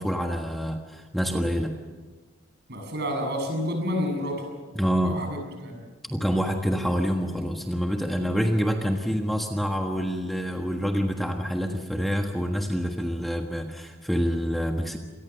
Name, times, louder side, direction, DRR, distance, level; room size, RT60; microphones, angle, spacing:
voice 1, 0.0-1.7 4.7-5.2 6.1-15.0, equal, ahead, 2 dB, 1.4 m, -27 dB
voice 2, 2.7-4.5 5.0-5.8, equal, 60° right, 3 dB, 6.8 m, -29 dB
26.0 x 19.5 x 6.9 m, 1.4 s
head